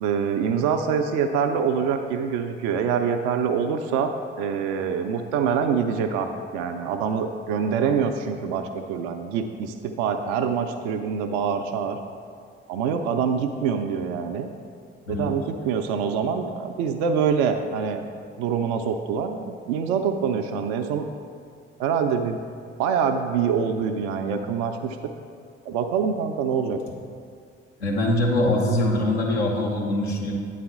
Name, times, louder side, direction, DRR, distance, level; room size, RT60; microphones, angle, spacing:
voice 1, 0.0-12.0 12.7-14.5 15.1-18.0 18.4-21.1 21.8-22.4 22.8-25.1 25.6-26.8, right 6 dB, 70° right, 6 dB, 0.5 m, -25 dB
voice 2, 27.8-30.3, left 1 dB, 80° left, -1 dB, 1.0 m, -23 dB
8.7 x 4.0 x 6.1 m, 2.2 s
figure-of-eight pair, 40°, 31 cm